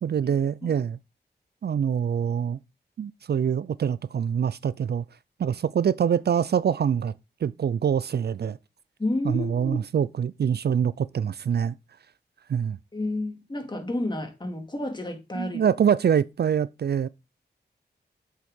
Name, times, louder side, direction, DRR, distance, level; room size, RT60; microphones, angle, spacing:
voice 1, 0.0-1.0 1.6-2.6 3.0-5.0 5.4-7.1 7.4-8.6 9.2-11.8 12.5-12.8 15.3-17.1, right 8 dB, 65° right, 0.4 m, -25 dB
voice 2, 9.0-9.8 12.9-15.6, left 1 dB, 25° left, 2.3 m, -30 dB
7.5 x 6.5 x 3.6 m
wide cardioid pair, 95°, 18 cm